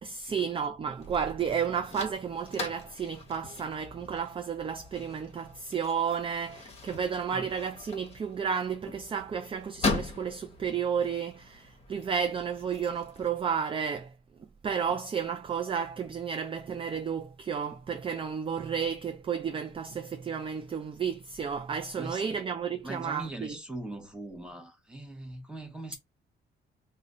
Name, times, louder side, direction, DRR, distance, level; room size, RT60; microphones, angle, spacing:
voice 1, 0.0-14.1 14.6-23.6, right 7 dB, 25° right, 0.4 m, -32 dB
sound 1, 1.0-13.3, left 4 dB, 30° left, 1.0 m, -40 dB
voice 2, 22.0-22.4 22.8-26.0, right 1 dB, 5° right, 0.9 m, -41 dB
2.5 x 2.2 x 3.6 m
cardioid pair, 90°, 20 cm